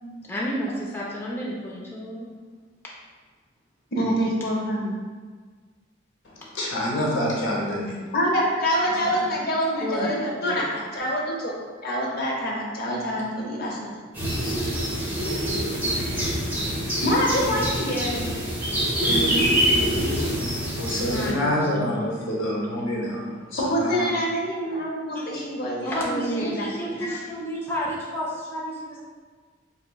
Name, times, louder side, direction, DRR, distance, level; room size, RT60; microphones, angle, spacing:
voice 1, 0.2-2.3 8.9-9.0 9.8-10.1 10.4-10.7 20.9-22.1 22.5-22.6 25.1-25.4 25.8-29.0, equal, 10° left, -5 dB, 0.4 m, -31 dB
voice 2, 3.9-4.9 8.1-11.6 11.8-14.0 17.0-18.2 19.0-19.4 23.6-27.0, equal, 50° left, -2 dB, 0.7 m, -26 dB
voice 3, 6.2-8.1 8.8-8.9 20.2-23.9, equal, 80° left, -3 dB, 0.8 m, -28 dB
sound 1, 14.1-21.3, equal, 10° right, 0.9 m, -25 dB
3.4 x 2.9 x 2.2 m, 1.5 s
head